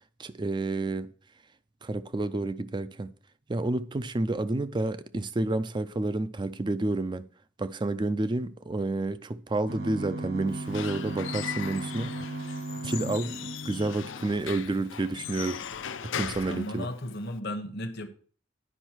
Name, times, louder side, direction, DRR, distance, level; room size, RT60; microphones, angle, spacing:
voice 1, 0.2-1.1 1.8-3.1 3.5-7.3 7.6-12.1 12.8-15.6 16.0-16.9, right 2 dB, 25° right, 0.4 m, -30 dB
sound 1, 9.7-14.7 15.2-15.3 15.6-15.8 16.2-16.6, right 2 dB, 70° right, 2.5 m, -37 dB
Squeak / Wood, 10.5-17.4, left 8 dB, 75° left, 0.5 m, -39 dB
voice 2, 16.5-18.1, left 1 dB, 60° left, 1.0 m, -35 dB
10.0 x 5.4 x 4.5 m
head